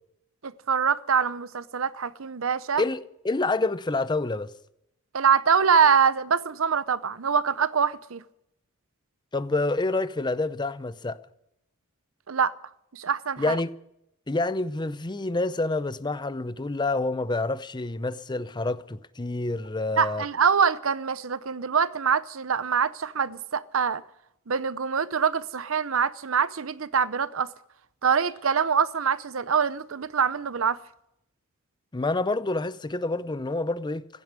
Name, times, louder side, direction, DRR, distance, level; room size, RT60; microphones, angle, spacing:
voice 1, 0.4-2.8 5.1-8.2 12.3-12.5 12.9-13.6 20.0-24.0 24.5-27.5 28.0-30.8, right 6 dB, 70° right, 0.7 m, -24 dB
voice 2, 2.8-4.5 9.3-11.2 13.4-13.7 14.3-20.2 31.9-34.1, left 2 dB, 20° left, 0.6 m, -28 dB
15.5 x 9.4 x 9.6 m
head